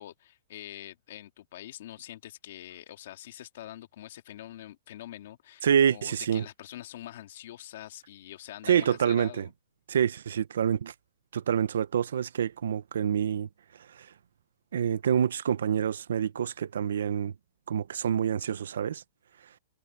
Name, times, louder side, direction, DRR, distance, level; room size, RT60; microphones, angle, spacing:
voice 1, 0.0-9.5, left 13 dB, 50° left, 2.3 m, -45 dB
voice 2, 5.6-6.4 8.6-9.5 9.9-10.9 11.3-13.5 14.0-14.1 14.7-17.3 17.7-19.0, right 8 dB, 90° right, 0.9 m, -27 dB
hypercardioid pair, 180°, 0 cm